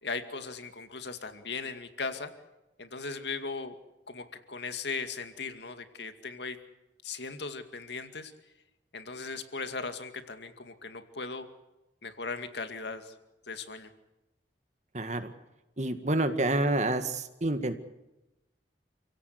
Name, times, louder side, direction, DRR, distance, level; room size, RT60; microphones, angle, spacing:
voice 1, 0.0-2.3 2.8-3.7 4.1-6.6 7.0-8.3 8.9-11.5 12.0-13.1 13.5-13.9, left 4 dB, 70° left, 8 dB, 2.3 m, -38 dB
voice 2, 14.9-15.3 15.8-17.7, right 2 dB, 40° right, 9 dB, 1.9 m, -28 dB
29.0 x 17.0 x 8.1 m, 0.96 s
head